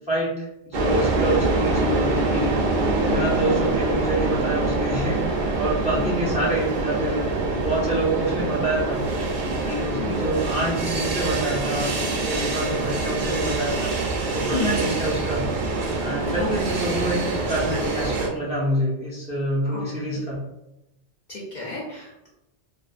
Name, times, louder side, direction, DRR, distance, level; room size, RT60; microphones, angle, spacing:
voice 1, 0.1-2.5 3.0-7.3 7.6-9.0 9.7-13.9 14.3-15.5 16.0-20.4, right 1 dB, 10° right, -6 dB, 0.4 m, -27 dB
sound 1, 0.7-18.3, right 2 dB, 60° right, 0.5 m, -25 dB
voice 2, 9.9-10.3 14.5-14.9 16.4-17.0 19.6-19.8 20.1-20.2 21.3-22.3, left 3 dB, 55° left, -6 dB, 0.5 m, -31 dB
2.4 x 2.2 x 2.4 m, 0.90 s
omnidirectional pair, 1.2 m